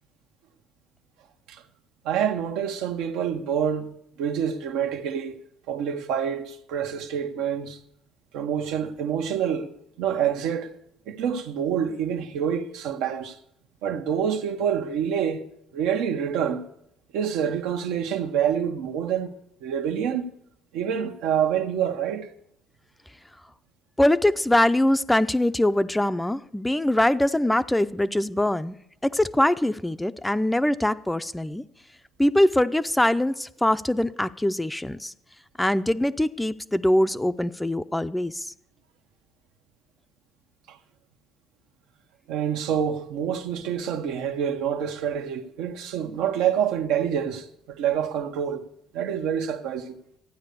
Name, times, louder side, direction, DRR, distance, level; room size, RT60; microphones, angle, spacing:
voice 1, 2.0-5.4 5.7-7.8 8.3-9.7 10.0-10.7 11.1-13.4 13.8-15.5 15.7-16.6 17.1-19.3 19.6-20.3 20.7-22.3 40.7-40.8 42.3-48.6 48.9-49.9, right 8 dB, 85° right, 1.2 m, -27 dB
voice 2, 24.0-28.7 29.0-31.6 32.2-35.1 35.6-38.5, left 1 dB, 5° left, 0.5 m, -23 dB
13.0 x 9.5 x 6.8 m
cardioid pair, 105°, 0 cm